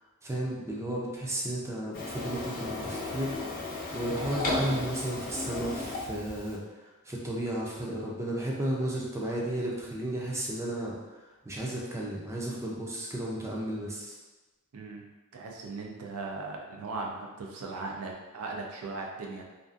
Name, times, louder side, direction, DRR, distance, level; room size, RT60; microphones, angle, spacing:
voice 1, 0.2-3.3 3.9-6.6 7.0-11.0 11.4-14.2, right 1 dB, 15° right, -3 dB, 0.4 m, -33 dB
Printer, 1.9-6.6, left 2 dB, 40° left, 0.5 m, -34 dB
voice 2, 14.7-19.4, right 3 dB, 75° right, 0 dB, 0.4 m, -38 dB
2.5 x 2.3 x 2.4 m, 1.2 s
head